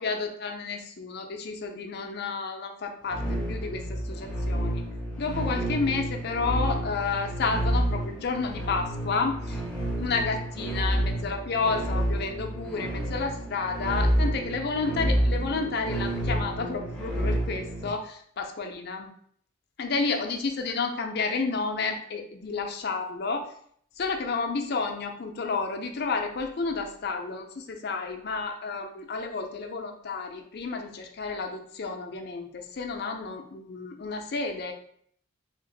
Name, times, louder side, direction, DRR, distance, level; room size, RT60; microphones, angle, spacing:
voice 1, 0.0-4.8 5.2-9.6 10.0-19.1 19.8-23.5 24.0-34.7, left 4 dB, 50° left, 4 dB, 0.4 m, -31 dB
sound 1, 3.1-17.9, right 1 dB, 5° left, 0.6 m, -29 dB
2.8 x 2.5 x 3.9 m, 0.62 s
head